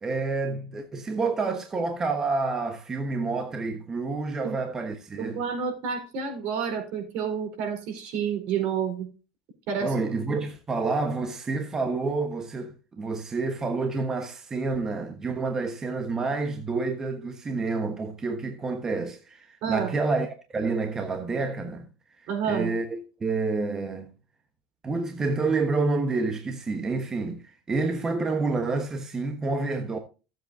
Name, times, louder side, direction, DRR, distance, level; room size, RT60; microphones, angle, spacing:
voice 1, 0.0-5.4 9.8-21.9 22.2-24.1 24.8-30.0, right 3 dB, 20° right, 1.2 m, -29 dB
voice 2, 5.2-9.1 9.7-9.9 19.6-19.9 22.3-22.7, right 7 dB, 60° right, 4.4 m, -29 dB
16.0 x 7.9 x 2.7 m
supercardioid pair, 120°, 3 cm